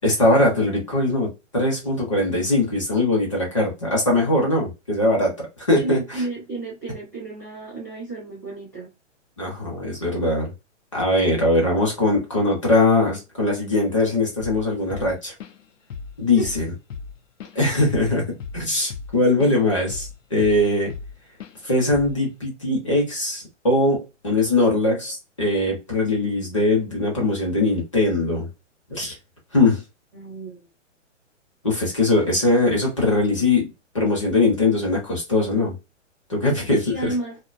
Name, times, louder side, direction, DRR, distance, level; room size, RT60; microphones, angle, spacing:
voice 1, 0.0-6.0 9.4-10.5 10.9-15.3 16.2-16.6 17.5-20.9 21.6-28.5 28.9-29.2 29.5-29.8 31.6-33.7 33.9-35.7 36.3-37.1, left 2 dB, 25° left, 0.6 m, -21 dB
voice 2, 5.8-8.9 16.4-16.5 30.1-30.7 36.7-37.4, right 2 dB, 15° right, 0.5 m, -32 dB
Drum kit / Drum, 14.4-14.7 14.9-15.7 15.9-16.2 16.4-19.6 19.9-21.1 21.4-21.6 21.9-22.2, left 5 dB, 80° left, 0.6 m, -36 dB
2.5 x 2.2 x 2.4 m
hypercardioid pair, 175°, 38 cm